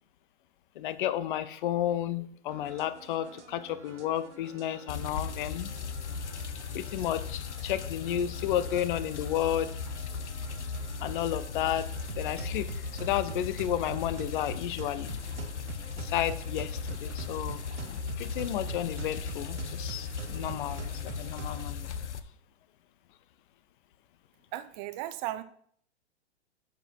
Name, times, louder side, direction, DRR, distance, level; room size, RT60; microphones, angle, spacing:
voice 1, 0.8-5.7 6.7-9.8 11.0-12.7 13.0-15.2 16.0-21.9, left 11 dB, 50° left, 0.7 m, -32 dB
sound 1, 2.5-21.7, right 6 dB, 90° right, 1.0 m, -46 dB
sound 2, 4.9-22.2, left 5 dB, 80° left, 0.8 m, -37 dB
voice 2, 24.5-25.4, right 14 dB, 30° right, 0.6 m, -36 dB
8.4 x 6.1 x 4.5 m
hypercardioid pair, 120°, 34 cm